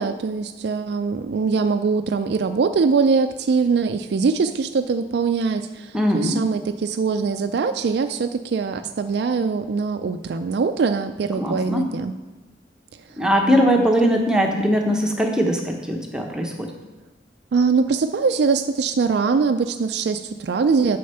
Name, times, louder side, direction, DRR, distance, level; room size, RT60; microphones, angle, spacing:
voice 1, 0.0-12.1 13.8-13.9 17.5-21.0, right 5 dB, 60° right, 8 dB, 0.3 m, -22 dB
voice 2, 5.9-6.4 11.4-11.9 13.2-16.7, equal, 5° right, 1 dB, 0.8 m, -20 dB
7.7 x 6.5 x 5.5 m, 1.2 s
head